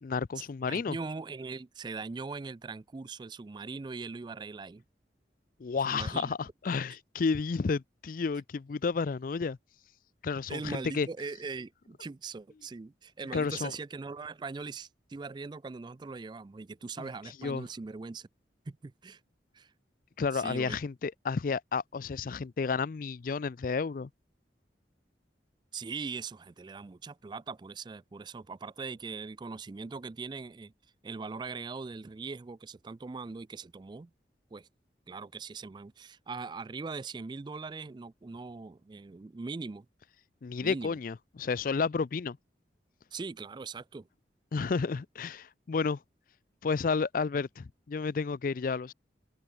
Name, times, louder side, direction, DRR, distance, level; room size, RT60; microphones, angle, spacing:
voice 1, 0.0-1.0 5.6-9.6 10.2-11.1 13.3-13.7 17.0-17.1 17.4-17.7 20.2-24.1 40.4-42.4 44.5-46.0 46.6-48.9, left 5 dB, 50° left, 0.4 m, -31 dB
voice 2, 0.7-4.8 5.9-6.3 10.5-18.3 18.7-19.2 19.5-19.7 20.3-20.8 25.7-30.7 31.0-34.1 34.5-34.7 35.1-39.9 40.6-40.9 43.1-44.1, right 4 dB, 25° right, 0.3 m, -41 dB
open air
head